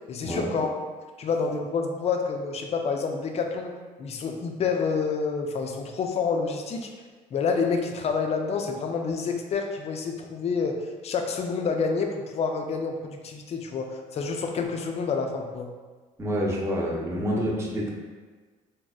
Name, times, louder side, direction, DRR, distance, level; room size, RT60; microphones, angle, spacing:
voice 1, 0.1-0.7 1.2-3.7 4.0-6.9 7.3-15.7, left 5 dB, 40° left, 4 dB, 0.4 m, -28 dB
voice 2, 16.2-17.9, equal, 15° right, -4 dB, 0.7 m, -27 dB
3.9 x 2.0 x 2.3 m, 1.4 s
supercardioid pair, 85°, 16 cm